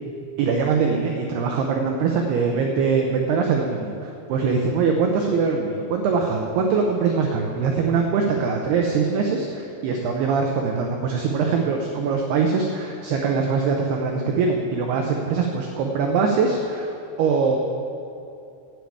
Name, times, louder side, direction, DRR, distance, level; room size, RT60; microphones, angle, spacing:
voice 1, 0.4-17.6, right 5 dB, 85° right, 2 dB, 2.3 m, -22 dB
9.3 x 8.6 x 8.7 m, 2.7 s
omnidirectional pair, 5.7 m